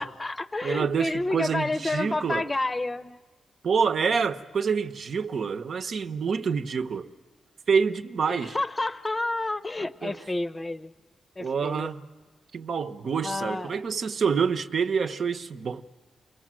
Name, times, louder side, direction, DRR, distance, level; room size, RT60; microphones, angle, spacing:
voice 1, 0.0-3.2 8.2-10.9 11.4-11.9 13.2-13.8, left 2 dB, 20° left, 0.8 m, -30 dB
voice 2, 0.6-2.4 3.6-7.1 7.7-8.6 9.8-10.2 11.4-12.0 12.5-15.8, right 6 dB, 60° right, 1.1 m, -27 dB
29.5 x 22.5 x 7.6 m
wide cardioid pair, 125°, 0 cm